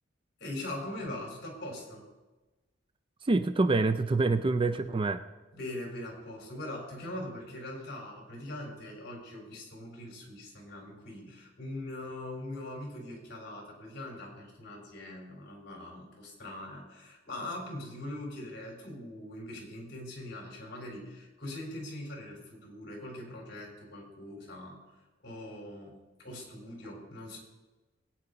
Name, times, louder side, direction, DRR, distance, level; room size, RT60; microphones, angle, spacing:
voice 1, 0.4-2.0 5.5-24.8 25.2-27.4, left 1 dB, 60° left, 0 dB, 4.2 m, -42 dB
voice 2, 3.2-5.2, right 3 dB, 25° right, 10 dB, 0.4 m, -26 dB
20.0 x 9.5 x 3.9 m, 1.2 s
head